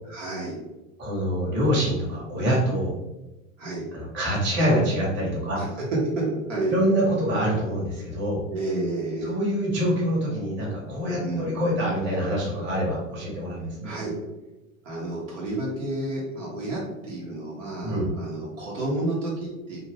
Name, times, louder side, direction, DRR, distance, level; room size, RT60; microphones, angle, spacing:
voice 1, 0.1-0.6 3.6-3.8 5.6-5.7 6.1-6.8 8.5-9.4 11.2-11.5 13.8-14.1 14.8-19.8, right 2 dB, 65° right, -5 dB, 1.3 m, -30 dB
voice 2, 1.0-2.9 3.9-5.6 6.7-8.4 9.2-13.9 17.8-18.1, equal, 25° right, -4 dB, 1.3 m, -25 dB
2.8 x 2.6 x 3.2 m, 1.0 s
figure-of-eight pair, 90°, 41 cm